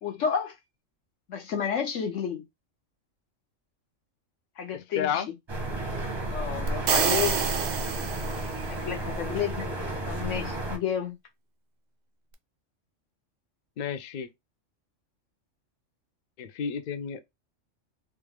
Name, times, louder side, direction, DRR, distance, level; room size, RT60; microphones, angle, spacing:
voice 1, 0.0-0.5 1.3-2.4 4.6-5.2 6.3-7.4 8.7-9.8 10.1-11.1, left 8 dB, 75° left, 1.3 m, -31 dB
voice 2, 4.7-5.3 13.8-14.3 16.4-17.2, left 7 dB, 60° left, 0.5 m, -31 dB
sound 1, 5.5-10.8, right 1 dB, 30° right, 0.6 m, -33 dB
sound 2, 6.7-8.7, right 7 dB, 80° right, 0.4 m, -27 dB
3.2 x 2.4 x 3.2 m
omnidirectional pair, 1.3 m